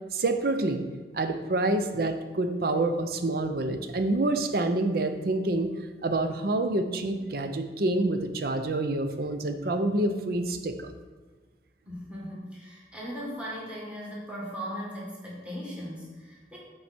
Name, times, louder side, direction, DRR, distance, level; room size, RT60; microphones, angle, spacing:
voice 1, 0.1-0.8 1.1-5.7 6.0-10.9, right 2 dB, 55° right, 8 dB, 0.6 m, -27 dB
voice 2, 11.8-16.6, equal, 5° right, -6 dB, 1.8 m, -38 dB
7.4 x 4.7 x 4.3 m, 1.4 s
head